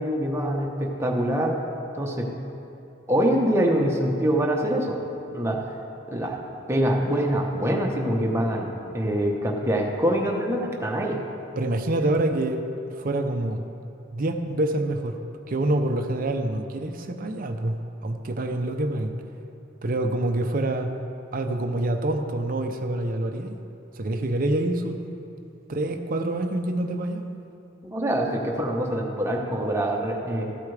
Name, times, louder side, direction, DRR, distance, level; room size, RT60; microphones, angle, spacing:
voice 1, 0.0-1.6 1.9-2.3 3.1-5.0 5.3-5.6 6.1-6.4 6.7-11.2 27.8-30.4, right 1 dB, 15° right, 0 dB, 1.0 m, -24 dB
voice 2, 11.6-12.6 13.0-13.6 14.1-15.2 15.5-19.1 19.8-20.9 21.3-23.5 24.0-25.0 25.7-27.2, right 1 dB, 40° right, 5 dB, 0.6 m, -26 dB
14.0 x 8.3 x 3.3 m, 2.7 s
head